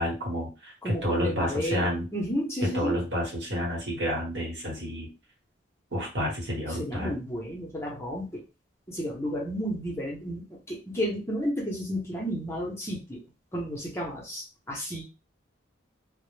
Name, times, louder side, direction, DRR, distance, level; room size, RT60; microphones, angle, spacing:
voice 1, 0.0-2.1 2.6-5.1 5.9-7.1, equal, 60° right, -2 dB, 1.0 m, -30 dB
voice 2, 0.8-2.9 6.7-8.4 8.9-13.2 13.5-15.0, equal, 15° left, -2 dB, 0.6 m, -32 dB
2.0 x 2.0 x 3.1 m, 0.29 s
head